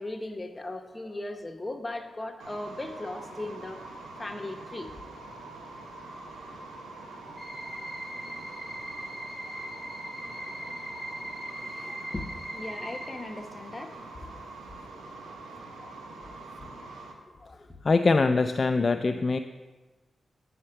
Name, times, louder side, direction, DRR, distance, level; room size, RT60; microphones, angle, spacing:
voice 1, 0.0-3.8 4.2-4.9 10.6-10.7 11.6-14.2 14.9-15.1, left 2 dB, 25° left, 5 dB, 0.9 m, -38 dB
sound 1, 2.4-17.1, right 2 dB, 85° right, 0.9 m, -44 dB
sound 2, 7.4-13.1, equal, ahead, 2.2 m, -40 dB
voice 2, 17.8-19.4, left 3 dB, 50° left, 7 dB, 0.3 m, -23 dB
8.6 x 4.4 x 5.7 m, 1.3 s
supercardioid pair, 50°, 0 cm